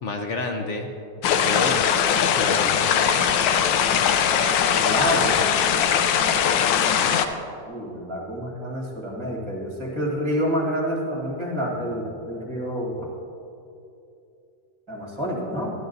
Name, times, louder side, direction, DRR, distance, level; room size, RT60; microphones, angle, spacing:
voice 1, 0.0-0.9 1.3-1.8 2.3-3.0 6.6-7.2, left 2 dB, 65° left, 4 dB, 0.7 m, -30 dB
sound 1, 1.2-7.3, left 8 dB, 90° left, 1.3 m, -20 dB
voice 2, 4.7-5.4 7.6-13.1 14.9-15.7, equal, 15° right, -3 dB, 1.8 m, -28 dB
13.0 x 11.5 x 2.6 m, 2.7 s
omnidirectional pair, 2.0 m